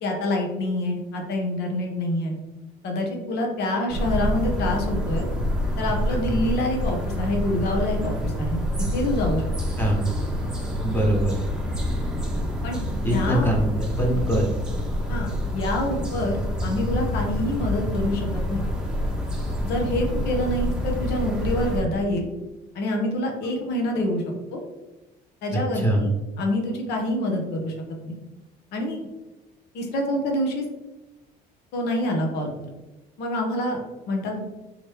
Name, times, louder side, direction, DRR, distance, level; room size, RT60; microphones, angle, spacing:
voice 1, 0.0-2.3 2.8-5.3 5.8-9.4 12.6-12.8 13.1-13.5 15.1-16.4 16.6-18.7 19.6-22.3 22.7-24.6 25.4-27.7 28.0-28.2 28.7-29.0 29.7-30.6 31.7-32.6 33.2-33.8 34.1-34.4, left 1 dB, 80° left, 1 dB, 1.1 m, -26 dB
sound 1, 3.9-21.8, left 1 dB, 5° right, 0.9 m, -27 dB
voice 2, 10.8-11.4 13.0-13.7 14.0-14.5 25.7-26.1, right 1 dB, 10° left, -2 dB, 1.3 m, -23 dB
4.1 x 3.0 x 3.4 m, 1.0 s
cardioid pair, 110°, 17 cm